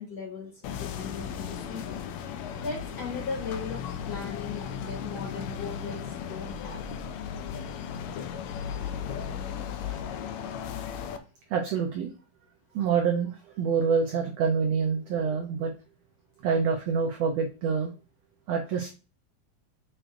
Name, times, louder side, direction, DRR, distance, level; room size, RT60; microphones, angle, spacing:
voice 1, 0.0-2.1 2.6-6.8, left 5 dB, 30° left, -2 dB, 2.9 m, -38 dB
sound 1, 0.6-11.2, left 8 dB, 85° left, 1.6 m, -36 dB
voice 2, 11.5-12.1 12.7-15.7 16.4-17.9 18.5-18.9, right 6 dB, 85° right, 3 dB, 1.4 m, -26 dB
6.3 x 6.2 x 2.6 m, 0.33 s
omnidirectional pair, 4.0 m